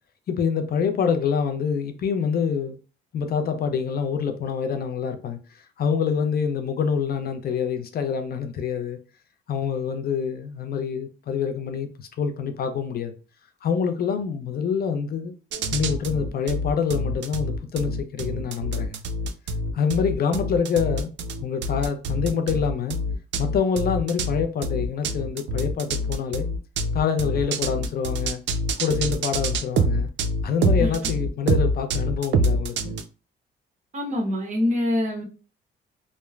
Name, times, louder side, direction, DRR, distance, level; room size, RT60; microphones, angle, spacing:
voice 1, 0.3-2.8 3.1-9.0 9.5-13.1 13.6-15.3 15.7-19.0 19.7-21.1 21.4-23.0 23.4-26.5 26.9-28.4 28.8-30.1 30.4-32.9, left 6 dB, 50° left, 0.4 m, -26 dB
sound 1, 15.5-33.0, right 1 dB, 65° right, 0.4 m, -26 dB
voice 2, 33.9-35.2, left 1 dB, 35° right, 0.9 m, -24 dB
3.1 x 2.0 x 2.3 m
cardioid pair, 90°, 20 cm